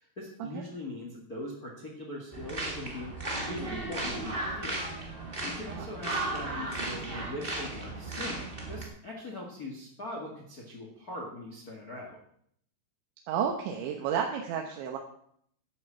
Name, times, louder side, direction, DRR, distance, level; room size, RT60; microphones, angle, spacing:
voice 1, 0.0-3.1 3.4-4.7 5.4-12.2, left 1 dB, 85° left, 0 dB, 0.8 m, -41 dB
sound 1, 2.3-8.8, right 2 dB, 60° right, 0.5 m, -35 dB
voice 2, 13.3-15.0, right 8 dB, 85° right, 2 dB, 3.4 m, -31 dB
11.5 x 8.1 x 7.4 m, 0.68 s
omnidirectional pair, 5.2 m